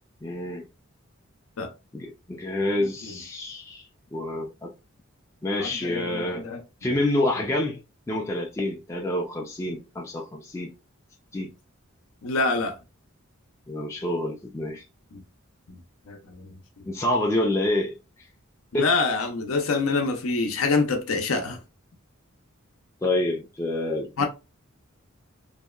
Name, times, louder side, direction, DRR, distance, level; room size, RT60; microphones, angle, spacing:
voice 1, 0.2-0.7 1.9-3.8 4.1-4.7 5.4-6.4 6.8-7.8 8.1-10.7 11.3-11.5 13.7-14.8 16.9-18.0 18.7-18.9 23.0-24.2, left 1 dB, 15° left, 0.3 m, -27 dB
voice 2, 5.6-6.6 12.2-12.7 15.1-15.2 16.1-16.4 18.7-21.6 24.2-24.3, left 3 dB, 80° left, 0.6 m, -26 dB
2.7 x 2.2 x 2.2 m
head